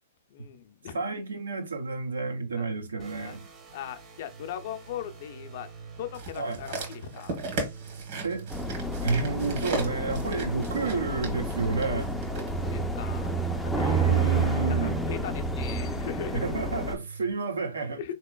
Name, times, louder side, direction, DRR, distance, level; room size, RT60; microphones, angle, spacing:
voice 1, 0.3-1.0 2.6-2.7 2.9-3.4 3.7-7.4 12.3-13.3 13.6-14.0 14.7-16.5 18.0-18.2, left 10 dB, 55° left, 0.5 m, -39 dB
voice 2, 0.9-3.4 6.4-6.6 8.2-8.5 9.0-12.1 13.7-15.0 16.3-18.0, right 3 dB, 85° right, 0.7 m, -30 dB
sound 1, 3.0-17.3, right 6 dB, 25° right, 0.7 m, -42 dB
sound 2, 6.1-12.5 13.2-13.3, right 2 dB, 50° right, 1.2 m, -37 dB
sound 3, 8.5-17.0, right 2 dB, ahead, 0.4 m, -30 dB
3.6 x 2.8 x 2.2 m
hypercardioid pair, 125°, 0 cm